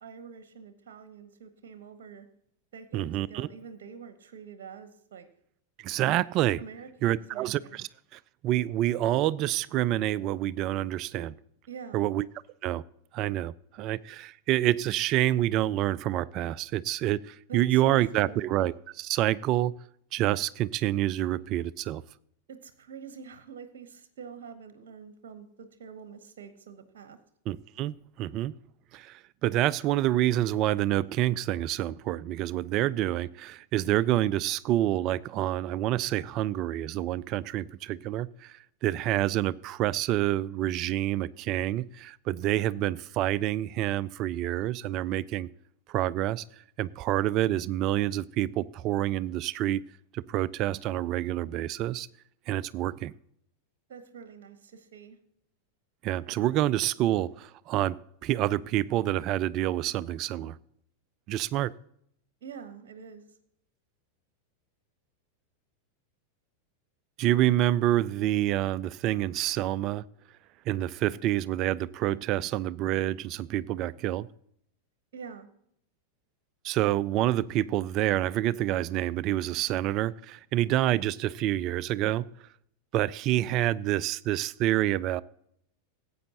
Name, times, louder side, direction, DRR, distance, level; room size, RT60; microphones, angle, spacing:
voice 1, 0.0-2.3 2.7-5.3 6.6-7.8 11.7-12.1 17.5-18.6 22.5-27.2 53.9-55.2 62.4-63.3 75.1-75.5, right 6 dB, 55° right, 10 dB, 1.0 m, -46 dB
voice 2, 2.9-3.5 5.8-6.6 7.0-11.3 11.9-12.3 12.6-12.8 13.1-19.8 20.1-22.0 27.5-28.5 28.9-45.5 45.9-46.4 46.8-49.8 50.1-52.1 52.5-53.1 56.0-60.6 61.3-61.7 67.2-70.0 70.7-74.3 76.6-82.3 82.9-85.2, right 13 dB, 40° right, 19 dB, 0.4 m, -27 dB
17.5 x 8.5 x 2.9 m, 0.70 s
figure-of-eight pair, 90°, 0 cm